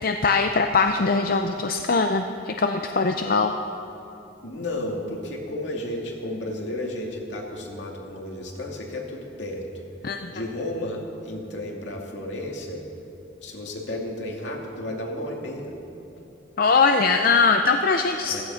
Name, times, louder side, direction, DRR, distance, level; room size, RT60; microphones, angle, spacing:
voice 1, 0.0-3.5 10.0-10.3 16.6-18.4, left 4 dB, 50° left, 5 dB, 0.6 m, -21 dB
voice 2, 4.4-9.6 10.3-12.8 13.4-15.7 18.3-18.4, left 1 dB, 75° left, -1 dB, 2.5 m, -32 dB
15.5 x 14.5 x 5.7 m, 3.0 s
head